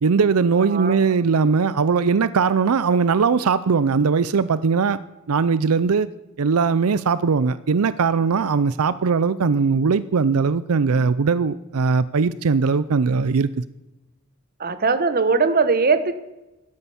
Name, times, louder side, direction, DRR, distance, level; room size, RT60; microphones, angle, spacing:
voice 1, 0.0-5.0 5.3-6.1 6.4-13.5, right 5 dB, 85° right, 16 dB, 0.5 m, -20 dB
voice 2, 0.6-1.0 14.6-16.1, right 4 dB, 45° right, 11 dB, 1.1 m, -20 dB
16.0 x 12.5 x 7.1 m, 1.0 s
head